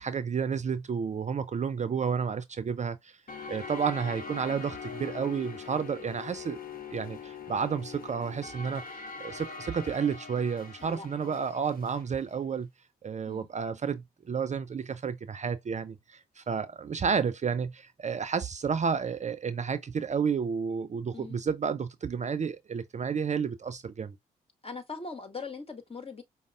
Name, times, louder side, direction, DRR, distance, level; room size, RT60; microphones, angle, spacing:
voice 1, 0.0-3.2 3.5-6.6 6.9-12.7 13.0-24.2, right 6 dB, 35° right, 0.5 m, -31 dB
sound 1, 3.3-12.1, left 5 dB, 45° left, 1.0 m, -42 dB
voice 2, 10.8-11.4 13.3-13.5 21.1-21.4 24.6-26.2, left 4 dB, 30° left, 1.5 m, -41 dB
5.1 x 2.0 x 3.6 m
hypercardioid pair, 40°, 20 cm